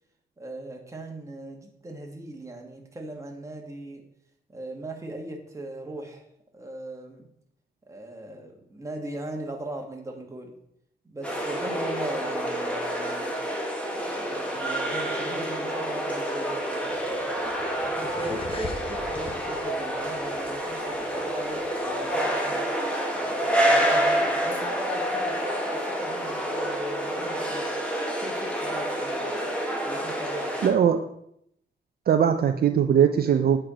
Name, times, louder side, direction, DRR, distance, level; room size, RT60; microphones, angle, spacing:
voice 1, 0.4-4.0 4.5-6.3 6.5-7.3 7.9-10.5 11.0-13.4 14.0-17.3 17.8-22.6 23.1-27.6 28.2-29.2 29.8-30.8, right 2 dB, 15° right, 1 dB, 1.3 m, -39 dB
sound 1, 11.2-30.7, equal, 5° left, 1.3 m, -28 dB
sound 2, 16.9-22.1, left 3 dB, 30° left, 0.7 m, -42 dB
voice 2, 30.6-31.0 32.1-33.6, right 8 dB, 60° right, 6 dB, 0.5 m, -20 dB
7.8 x 4.4 x 5.0 m, 0.73 s
wide cardioid pair, 140°, 18 cm